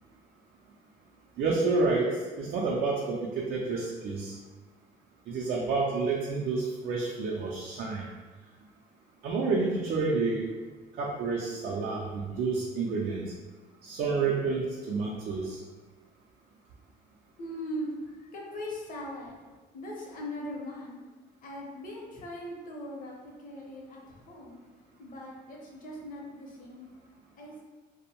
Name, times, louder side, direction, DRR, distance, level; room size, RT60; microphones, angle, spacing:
voice 1, 1.4-4.4 5.3-8.1 9.2-10.5 11.0-13.3 13.8-15.6, right 3 dB, 60° right, -3 dB, 0.4 m, -29 dB
voice 2, 17.4-19.4 19.7-21.1 21.4-24.6 25.0-27.6, equal, 55° left, -2 dB, 0.7 m, -40 dB
2.5 x 2.1 x 2.9 m, 1.3 s
cardioid pair, 110°, 17 cm